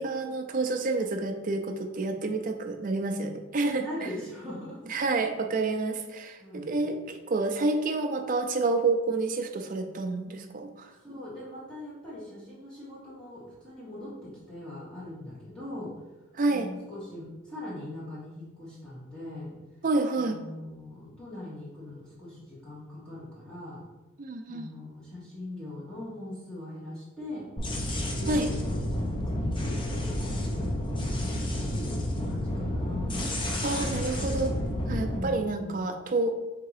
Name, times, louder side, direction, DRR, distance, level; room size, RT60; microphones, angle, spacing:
voice 1, 0.0-3.8 4.9-10.9 16.3-16.7 19.8-20.4 24.2-24.7 28.3-28.5 33.6-34.5 34.9-36.3, right 3 dB, 40° right, 5 dB, 0.4 m, -29 dB
voice 2, 3.7-5.1 6.4-7.0 10.9-15.9 16.5-19.5 20.2-23.8 24.5-27.5 28.1-28.6 29.4-30.3 30.9-33.3 34.9-36.1, left 1 dB, 5° left, -9 dB, 1.1 m, -41 dB
sound 1, 27.6-35.2, left 1 dB, 20° left, 0.5 m, -30 dB
3.6 x 2.8 x 4.7 m, 1.1 s
head